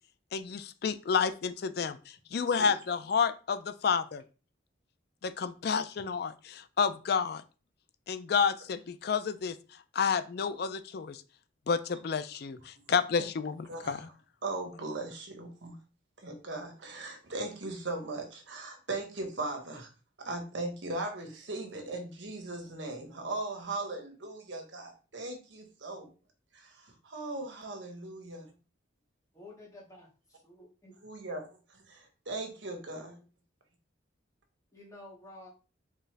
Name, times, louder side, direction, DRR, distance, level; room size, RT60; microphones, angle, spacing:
voice 1, 0.3-4.2 5.2-7.4 8.1-9.6 9.9-11.2 11.7-14.1, left 6 dB, 55° left, 12 dB, 0.4 m, -30 dB
voice 2, 13.7-14.0 14.4-15.7 16.2-19.9 20.2-26.1 26.5-28.5 31.0-33.2, right 2 dB, 75° right, 3 dB, 1.3 m, -38 dB
voice 3, 29.3-30.9 32.9-33.2 34.7-35.5, left 2 dB, 15° left, -3 dB, 1.9 m, -52 dB
4.5 x 3.5 x 3.3 m, 0.34 s
head